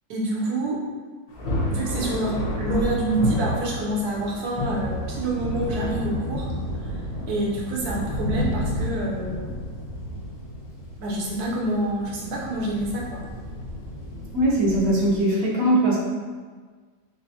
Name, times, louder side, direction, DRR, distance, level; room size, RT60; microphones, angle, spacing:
voice 1, 0.1-0.8 1.7-6.5 6.8-7.0 7.3-9.4 11.0-13.2, right 1 dB, 85° right, -3 dB, 1.3 m, -27 dB
Thunder, 1.3-15.2, equal, 80° left, 1.4 m, -31 dB
voice 2, 14.3-16.0, right 1 dB, 70° right, -5 dB, 1.2 m, -20 dB
3.9 x 3.1 x 2.7 m, 1.5 s
omnidirectional pair, 1.6 m